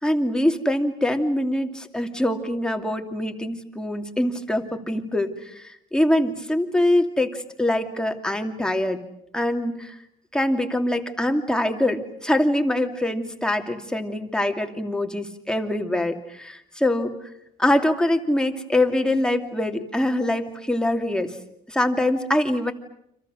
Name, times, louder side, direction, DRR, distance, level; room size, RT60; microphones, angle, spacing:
voice 1, 0.0-9.0 9.3-10.0 10.3-17.1 17.6-21.3 21.7-22.7, left 1 dB, 5° left, 4 dB, 2.7 m, -24 dB
30.0 x 26.5 x 6.4 m, 0.75 s
cardioid pair, 110°, 17 cm